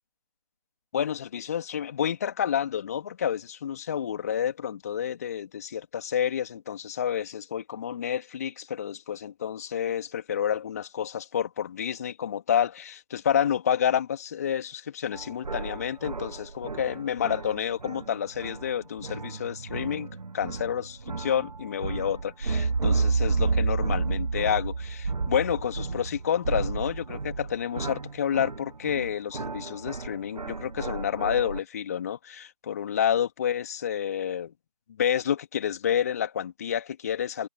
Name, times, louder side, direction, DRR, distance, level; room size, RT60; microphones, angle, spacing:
voice 1, 0.9-20.1 20.3-34.5 35.0-37.5, left 9 dB, 25° left, 2.9 m, -29 dB
sound 1, 15.1-18.7 19.0-31.6, right 4 dB, 70° right, 0.8 m, -31 dB
figure-of-eight pair, 160°, 21 cm